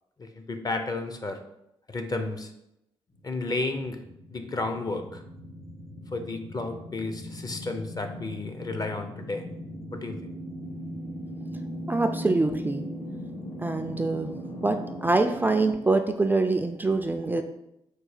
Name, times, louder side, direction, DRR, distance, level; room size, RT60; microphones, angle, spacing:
voice 1, 0.2-1.4 1.9-2.5 3.2-4.0 4.3-5.2 6.1-9.5 9.9-10.2, left 2 dB, 35° left, 7 dB, 0.6 m, -32 dB
sound 1, 3.1-15.7, equal, 65° left, 1.8 m, -39 dB
voice 2, 11.9-12.8 13.6-14.3 14.6-17.4, right 3 dB, 15° right, 6 dB, 0.4 m, -25 dB
4.6 x 2.3 x 4.8 m, 0.83 s
cardioid pair, 65°, 11 cm